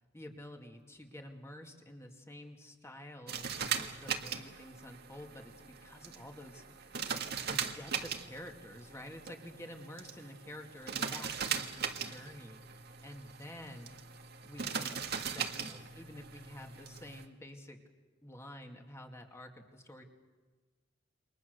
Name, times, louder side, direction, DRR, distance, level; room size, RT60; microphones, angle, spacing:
voice 1, 0.0-7.2 7.5-13.9 14.4-15.0 15.3-17.8 18.2-20.0, left 1 dB, 15° left, 3 dB, 2.3 m, -50 dB
sound 1, 3.3-17.2, right 7 dB, 55° right, 1.7 m, -40 dB
28.5 x 23.5 x 6.8 m, 1.3 s
head